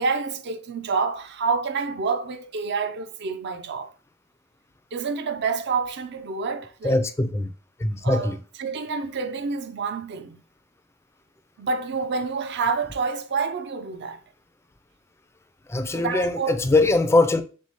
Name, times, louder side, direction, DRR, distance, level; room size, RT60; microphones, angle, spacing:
voice 1, 0.0-3.9 4.9-7.0 8.0-8.3 8.6-10.4 11.6-14.2 15.9-16.6, right 4 dB, 55° right, 0.5 m, -28 dB
voice 2, 6.8-7.5 7.8-8.4 15.7-17.4, left 2 dB, 15° left, 0.3 m, -21 dB
3.4 x 3.3 x 4.0 m
head